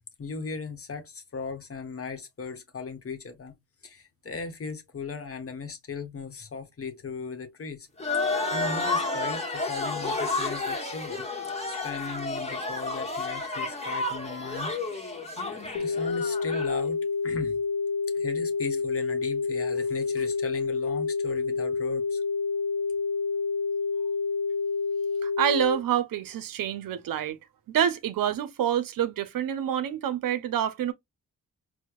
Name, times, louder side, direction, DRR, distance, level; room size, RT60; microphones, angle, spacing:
voice 1, 0.2-3.5 3.8-7.9 8.5-11.3 11.7-17.6 18.1-22.2, left 4 dB, 40° left, 1.0 m, -38 dB
sound 1, 8.0-16.8, left 3 dB, 20° left, 1.2 m, -31 dB
sound 2, 15.8-25.8, left 4 dB, 70° left, 0.6 m, -28 dB
voice 2, 25.2-27.4 27.7-30.9, right 10 dB, 70° right, 0.6 m, -27 dB
4.4 x 2.1 x 2.3 m
supercardioid pair, 50°, 34 cm